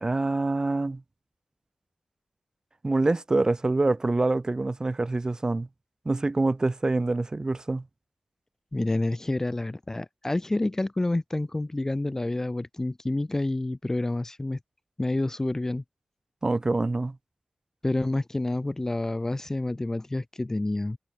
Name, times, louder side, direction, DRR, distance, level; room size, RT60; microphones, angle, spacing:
voice 1, 0.0-1.0 2.8-5.7 6.0-7.8 16.4-17.2, right 2 dB, 30° right, 0.8 m, -25 dB
voice 2, 8.7-14.6 15.0-15.8 17.8-21.0, left 2 dB, 20° left, 0.4 m, -28 dB
wide cardioid pair, 110°, 2 cm